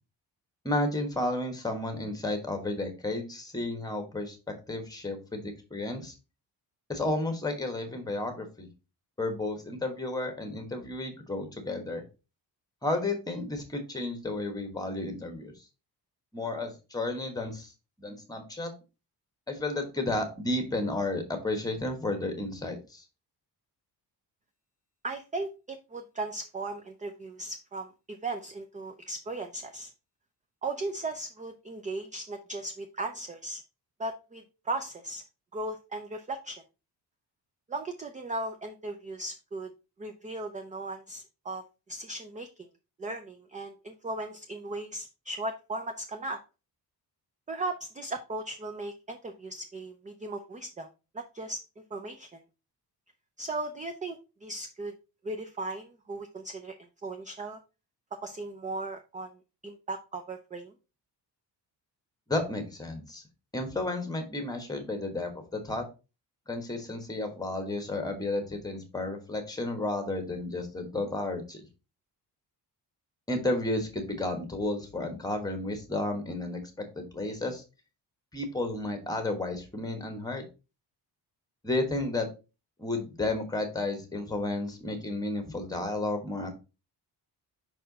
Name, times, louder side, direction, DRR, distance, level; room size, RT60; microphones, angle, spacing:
voice 1, 0.6-4.4 4.7-6.1 6.9-8.7 9.2-12.0 12.8-15.5 16.3-17.7 18.0-18.7 19.5-23.0 62.3-63.2 63.5-65.9 66.5-71.6 73.3-77.6 78.3-80.4 81.6-82.3 82.8-86.5, left 2 dB, 10° left, 5 dB, 1.2 m, -32 dB
voice 2, 25.0-29.9 30.6-33.6 34.0-35.2 35.5-36.6 37.7-39.7 40.0-42.5 43.0-46.4 47.5-50.9 51.1-51.6 51.9-52.4 53.4-54.9 55.2-56.7 57.0-57.6 58.2-60.7, right 2 dB, 20° right, 6 dB, 0.4 m, -37 dB
5.6 x 4.4 x 4.0 m, 0.29 s
wide cardioid pair, 175°, 40 cm